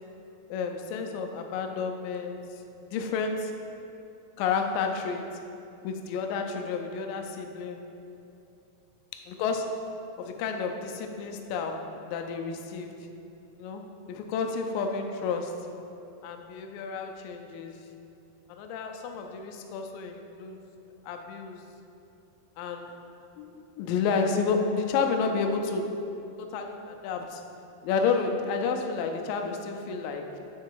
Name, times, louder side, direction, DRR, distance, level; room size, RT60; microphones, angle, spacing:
voice 1, 0.5-3.5 4.4-5.3 5.8-7.9 9.1-9.8 10.2-13.0 13.6-15.7 16.2-17.8 18.5-20.6 21.0-21.6 22.6-22.9 23.4-26.0 26.4-27.4 27.8-30.4, left 5 dB, 80° left, 4 dB, 2.0 m, -31 dB
8.1 x 3.8 x 4.5 m, 2.7 s
omnidirectional pair, 4.4 m